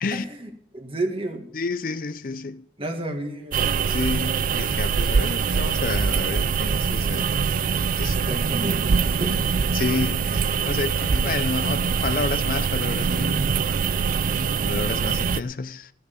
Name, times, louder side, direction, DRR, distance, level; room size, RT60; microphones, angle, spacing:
voice 1, 0.1-1.5 2.8-3.7 8.1-9.5, right 1 dB, 30° right, 1.8 m, -31 dB
voice 2, 1.5-2.7 3.8-7.3 8.0-8.4 9.7-13.5 14.7-15.9, left 4 dB, 50° left, 0.5 m, -30 dB
sound 1, 3.5-15.4, right 5 dB, 50° right, 0.4 m, -23 dB
15.0 x 6.5 x 7.0 m
head